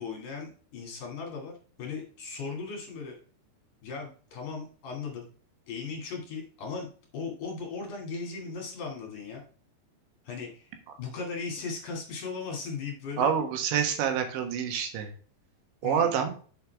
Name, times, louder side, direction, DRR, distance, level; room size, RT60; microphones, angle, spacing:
voice 1, 0.0-3.2 3.8-5.3 5.7-9.4 10.2-13.3 15.8-16.2, left 5 dB, 50° left, 0 dB, 3.6 m, -37 dB
voice 2, 13.2-15.1 15.8-16.3, right 8 dB, 85° right, 6 dB, 3.7 m, -27 dB
7.9 x 7.1 x 3.4 m, 0.41 s
omnidirectional pair, 5.0 m